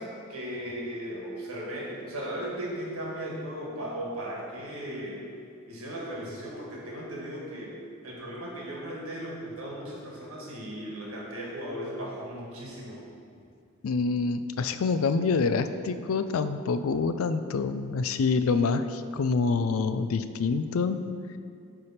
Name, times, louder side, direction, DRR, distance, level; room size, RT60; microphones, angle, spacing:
voice 1, 0.0-5.2 5.7-7.8 8.0-13.0, equal, 85° right, -3 dB, 1.7 m, -37 dB
voice 2, 13.8-21.0, left 4 dB, 75° left, 11 dB, 0.4 m, -26 dB
8.2 x 3.4 x 5.7 m, 2.4 s
head